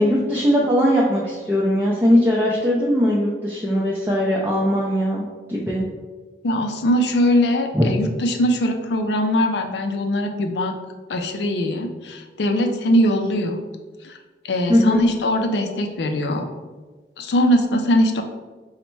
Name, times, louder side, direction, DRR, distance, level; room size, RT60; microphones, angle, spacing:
voice 1, 0.0-5.8 7.7-7.9 14.7-15.1, equal, 10° right, -5 dB, 0.4 m, -20 dB
voice 2, 6.4-10.7 11.1-13.6 14.0-14.2 14.4-16.5 17.2-18.2, equal, 80° left, 4 dB, 0.4 m, -21 dB
4.0 x 2.1 x 4.5 m, 1.3 s
head